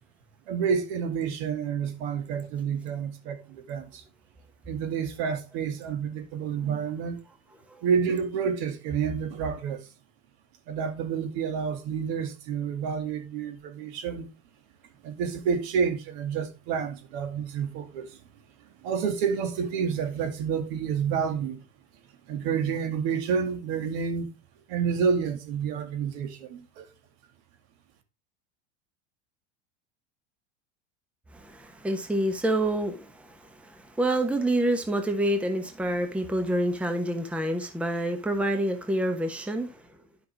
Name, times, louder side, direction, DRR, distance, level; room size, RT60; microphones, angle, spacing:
voice 1, 0.5-4.0 4.7-7.2 7.8-9.8 10.7-14.3 15.0-18.1 18.8-21.6 22.3-24.3 24.7-26.9, right 6 dB, 60° right, 2.2 m, -29 dB
voice 2, 31.3-39.8, right 1 dB, 5° right, 1.0 m, -27 dB
10.5 x 5.7 x 3.4 m
supercardioid pair, 125°, 36 cm